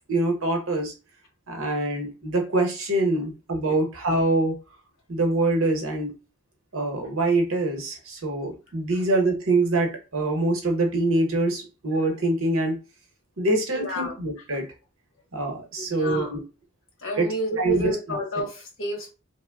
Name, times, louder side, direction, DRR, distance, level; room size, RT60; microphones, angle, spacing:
voice 1, 0.1-0.9 1.5-4.6 5.1-6.1 6.7-12.8 13.4-14.7 15.3-16.4 17.2-17.3 17.6-18.2, right 2 dB, 80° right, 0.8 m, -24 dB
voice 2, 13.7-14.2 15.8-16.4 17.0-19.1, equal, 70° left, 1.1 m, -30 dB
3.0 x 2.1 x 2.2 m
head